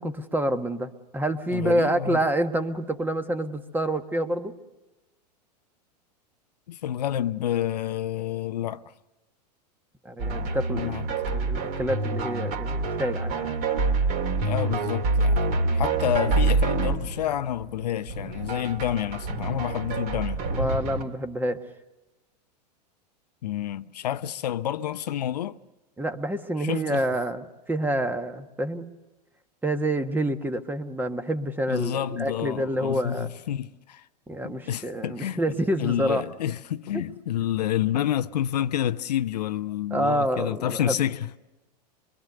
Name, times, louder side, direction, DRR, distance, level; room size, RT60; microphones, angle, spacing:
voice 1, 0.0-4.5 10.0-11.0 11.2-13.5 15.5-15.8 20.5-21.6 26.0-28.9 29.6-33.3 34.3-36.2 39.9-41.0, right 1 dB, 10° right, 1.5 m, -27 dB
voice 2, 1.5-2.2 6.7-8.9 10.7-11.1 14.4-20.5 23.4-25.6 26.6-27.0 31.7-34.1 34.4-41.4, left 11 dB, 70° left, 0.7 m, -29 dB
sound 1, 10.2-21.0, right 3 dB, 45° right, 2.8 m, -26 dB
24.5 x 23.5 x 6.7 m
hypercardioid pair, 95°, 21 cm